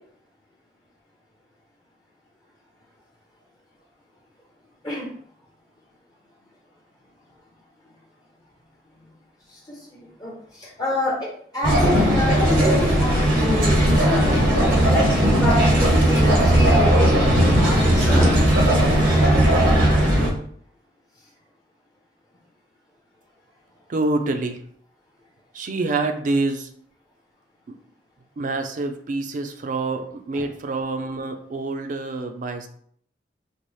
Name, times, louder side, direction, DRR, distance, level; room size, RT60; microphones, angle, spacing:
voice 1, 9.5-11.3 11.5-14.4 14.9-18.3 30.4-30.5, left 1 dB, 20° left, -4 dB, 0.6 m, -28 dB
sound 1, 11.6-20.3, equal, 85° right, 1.0 m, -17 dB
voice 2, 23.9-24.6 25.5-26.7 27.7-27.8 28.4-32.7, right 3 dB, 45° right, 7 dB, 0.4 m, -26 dB
4.0 x 2.0 x 3.1 m, 0.62 s
head